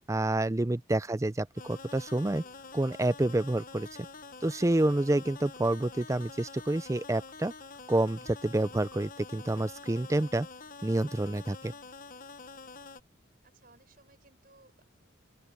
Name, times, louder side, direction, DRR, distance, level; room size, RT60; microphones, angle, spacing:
voice 1, 0.1-2.4 2.7-3.9 4.4-7.5 7.9-10.5 10.8-11.7, right 1 dB, 15° right, 0.4 m, -28 dB
sound 1, 1.6-13.0, left 4 dB, 40° left, 1.1 m, -47 dB
voice 2, 13.4-14.8, right 3 dB, 45° right, 6.0 m, -63 dB
open air
head